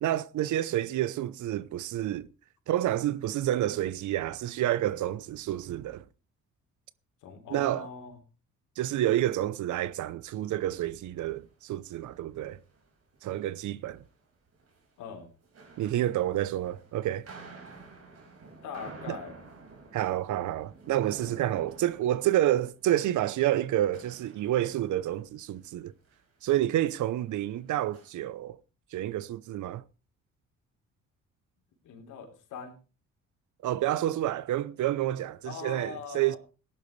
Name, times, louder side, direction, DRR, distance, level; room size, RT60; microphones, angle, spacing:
voice 1, 0.0-2.3 2.7-6.0 7.5-7.9 8.8-12.6 13.2-14.0 15.8-17.3 19.1-19.2 19.9-25.9 26.4-28.6 28.9-29.8 33.6-36.4, right 13 dB, 75° right, 0.8 m, -29 dB
voice 2, 7.2-8.2 15.0-15.3 18.2-18.3 18.6-19.4 31.8-32.8 35.4-36.4, left 6 dB, 85° left, 3.6 m, -42 dB
sound 1, 11.2-11.5 11.8-12.2 12.5-14.2 14.5-14.8 15.4-23.7 23.9-25.8 26.0-26.4 26.7-28.1, right 3 dB, 55° right, 5.2 m, -51 dB
18.5 x 11.0 x 3.3 m
cardioid pair, 90°, 30 cm